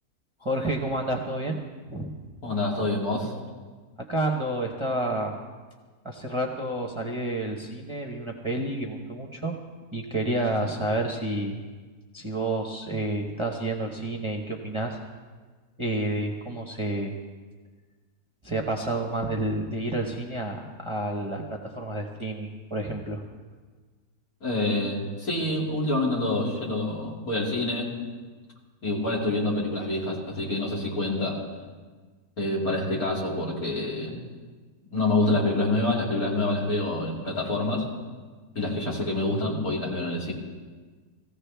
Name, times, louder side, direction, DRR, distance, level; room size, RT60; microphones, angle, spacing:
voice 1, 0.4-1.6 1.9-2.1 4.0-5.4 6.0-9.6 9.9-11.6 12.1-15.0 15.8-17.1 18.4-21.4 21.7-23.2, right 1 dB, 25° right, 0 dB, 0.9 m, -29 dB
voice 2, 2.4-3.3 24.4-27.9 28.8-31.4 32.4-34.2 34.9-37.8 38.5-40.3, left 2 dB, 70° left, -4 dB, 3.1 m, -27 dB
18.5 x 15.5 x 3.4 m, 1.4 s
omnidirectional pair, 1.6 m